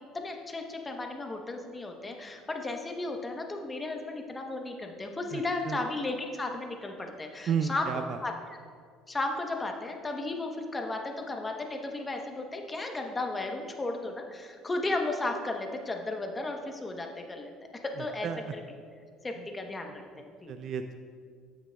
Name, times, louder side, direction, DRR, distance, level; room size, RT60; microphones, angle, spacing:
voice 1, 0.1-7.9 8.2-8.3 9.1-18.6 19.2-20.5, left 2 dB, 20° left, 3 dB, 0.9 m, -34 dB
voice 2, 5.3-5.8 7.5-8.2 18.2-18.5 19.4-19.5 20.5-21.0, right 7 dB, 55° right, 8 dB, 0.3 m, -32 dB
13.5 x 6.0 x 2.2 m, 2.1 s
supercardioid pair, 100°, 0 cm